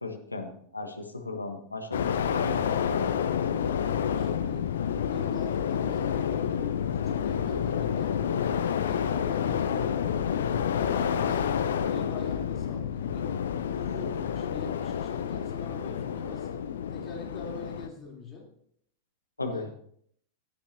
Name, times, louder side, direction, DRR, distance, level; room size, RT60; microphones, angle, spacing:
voice 1, 0.0-3.4 19.4-19.7, left 3 dB, 80° left, 4 dB, 1.3 m, -36 dB
sound 1, 1.9-17.9, left 8 dB, 65° left, 0.6 m, -29 dB
voice 2, 4.1-4.7 5.0-8.2 8.6-9.9 10.2-13.3 13.7-16.6 16.9-18.5 19.5-19.7, left 2 dB, 25° left, -2 dB, 3.4 m, -44 dB
15.0 x 8.7 x 2.8 m, 0.67 s
figure-of-eight pair, 90°, 0 cm